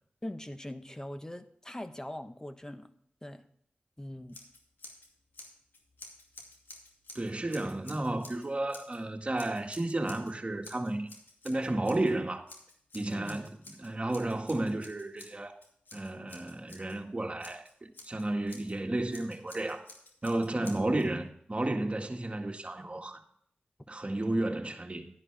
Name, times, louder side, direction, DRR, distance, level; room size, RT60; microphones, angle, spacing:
voice 1, 0.2-2.9 3.2-3.4 4.0-4.4 13.1-13.4 20.6-20.7, left 1 dB, 20° left, 1.1 m, -41 dB
Scissors, 4.3-5.1 5.3-9.0 9.4-10.3 10.6-12.1 12.5-17.0 17.4-18.7 19.1-21.1, left 2 dB, 85° left, 2.5 m, -51 dB
voice 2, 7.2-11.1 11.4-12.4 12.9-15.6 15.9-19.8 20.2-23.2 23.9-25.1, right 2 dB, 35° right, 1.8 m, -32 dB
12.0 x 10.5 x 3.4 m
cardioid pair, 60°, 3 cm